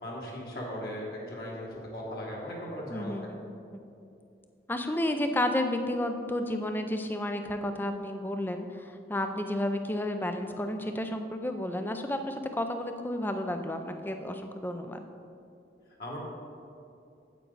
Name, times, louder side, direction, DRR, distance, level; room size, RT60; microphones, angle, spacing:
voice 1, 0.0-3.1 16.0-16.2, equal, 55° left, -4 dB, 1.8 m, -38 dB
voice 2, 2.9-3.5 4.7-15.0, left 1 dB, 10° left, 7 dB, 0.4 m, -32 dB
9.2 x 8.1 x 4.0 m, 2.6 s
head